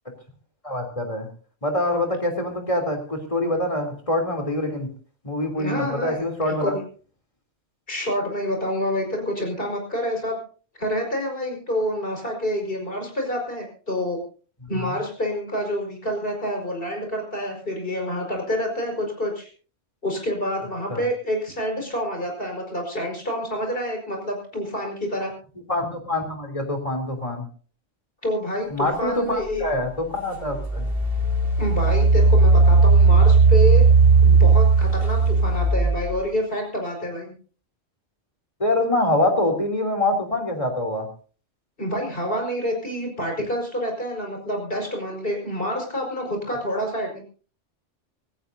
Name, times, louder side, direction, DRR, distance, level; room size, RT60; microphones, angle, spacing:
voice 1, 0.6-1.3 1.6-4.9 5.2-6.7 14.7-15.0 20.9-21.1 25.7-27.5 28.7-30.9 38.6-41.1, left 1 dB, 25° left, 3 dB, 3.3 m, -25 dB
voice 2, 5.6-6.3 6.6-6.8 7.9-10.4 10.8-14.2 14.7-19.5 20.0-25.3 28.2-29.6 31.6-33.9 34.2-37.3 41.8-47.2, equal, 50° left, 2 dB, 5.4 m, -27 dB
Engine, 29.6-29.7 30.3-36.2, right 4 dB, 50° right, 2.9 m, -16 dB
26.0 x 14.0 x 2.7 m, 0.39 s
omnidirectional pair, 1.2 m